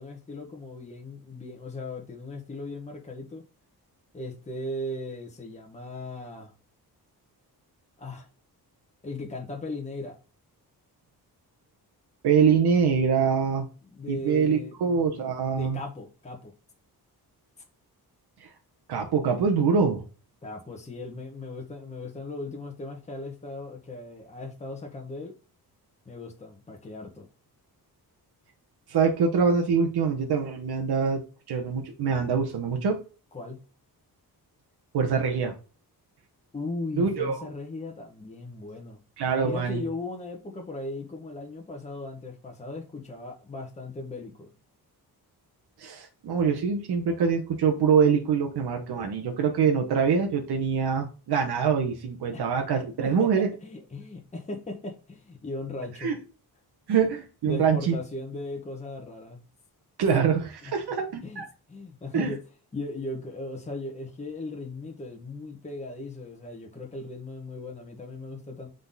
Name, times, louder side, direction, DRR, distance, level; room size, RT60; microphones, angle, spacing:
voice 1, 0.0-3.4 4.1-6.5 8.0-8.3 9.0-10.2 13.9-14.8 15.5-16.5 20.4-25.3 26.0-27.3 33.3-33.6 36.5-39.0 39.4-44.5 53.0-56.1 57.4-59.4 60.6-60.7 61.2-61.4 61.7-62.4 62.7-68.7, left 2 dB, 15° left, 1.2 m, -37 dB
voice 2, 12.2-13.7 14.1-15.8 18.4-18.5 18.9-20.0 28.9-31.2 31.5-33.0 34.9-35.5 37.0-37.5 39.2-39.8 45.8-53.5 56.0-56.2 56.9-57.9 60.0-61.5 62.1-62.3, right 6 dB, 80° right, 1.1 m, -24 dB
8.0 x 3.9 x 4.0 m
wide cardioid pair, 165°, 38 cm